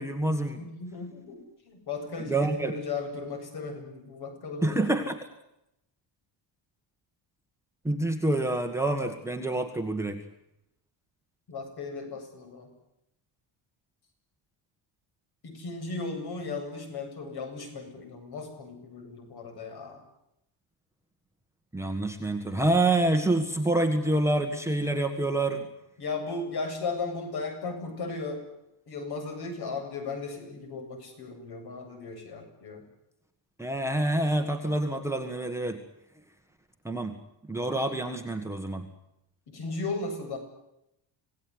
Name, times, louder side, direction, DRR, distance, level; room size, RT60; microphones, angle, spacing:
voice 1, 0.0-0.6 2.3-2.7 4.6-5.2 7.8-10.2 21.7-25.7 33.6-35.8 36.8-37.2 37.5-38.8, right 2 dB, 5° right, 4 dB, 1.7 m, -27 dB
voice 2, 0.6-4.8 11.5-12.7 15.4-20.0 26.0-28.4 28.9-32.8 39.5-40.4, left 3 dB, 50° left, 5 dB, 8.0 m, -36 dB
27.0 x 18.5 x 9.7 m, 0.85 s
cardioid pair, 180°, 49 cm